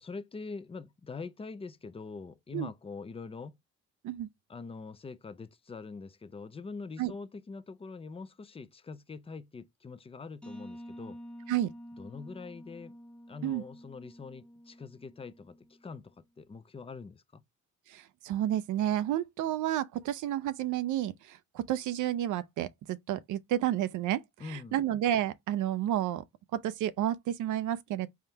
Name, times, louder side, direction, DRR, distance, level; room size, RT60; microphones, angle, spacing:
voice 1, 0.0-3.6 4.5-11.2 12.0-13.0 13.3-17.4 24.4-24.8, left 4 dB, 20° left, 0.5 m, -44 dB
sound 1, 10.4-16.0, equal, 5° left, 1.1 m, -49 dB
voice 2, 17.9-24.2 24.5-26.2 26.5-28.1, right 12 dB, 75° right, 0.5 m, -31 dB
4.5 x 3.5 x 2.8 m
cardioid pair, 90°, 30 cm